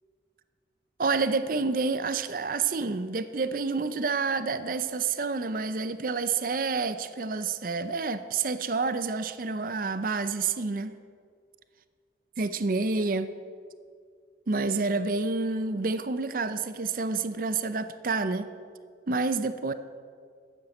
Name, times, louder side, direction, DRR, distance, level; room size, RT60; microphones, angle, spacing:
voice 1, 1.0-11.0 12.4-13.3 14.5-18.5 19.1-19.7, right 4 dB, 50° right, 0.5 m, -28 dB
12.5 x 8.7 x 7.8 m
head